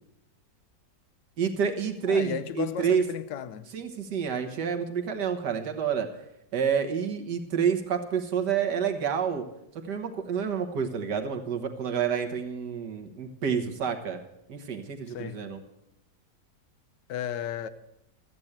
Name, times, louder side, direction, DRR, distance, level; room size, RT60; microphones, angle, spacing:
voice 1, 1.4-3.0 3.7-6.1 6.5-9.4 9.8-14.2 14.5-15.6, right 7 dB, 75° right, 1.9 m, -28 dB
voice 2, 2.1-3.7 15.1-15.4 17.1-17.7, left 9 dB, 90° left, 1.3 m, -34 dB
13.5 x 8.7 x 8.0 m
omnidirectional pair, 1.8 m